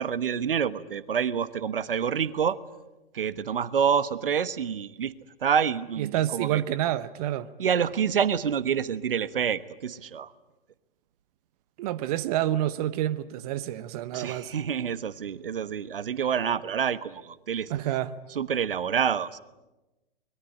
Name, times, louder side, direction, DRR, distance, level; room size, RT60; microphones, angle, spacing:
voice 1, 0.0-2.6 3.1-5.1 5.4-6.6 7.6-10.3 14.1-17.7 18.3-19.4, right 7 dB, 70° right, 1.3 m, -27 dB
voice 2, 6.0-7.5 11.8-14.5 17.7-18.2, right 13 dB, 40° right, 1.1 m, -28 dB
24.5 x 22.0 x 10.0 m
figure-of-eight pair, 120°, 29 cm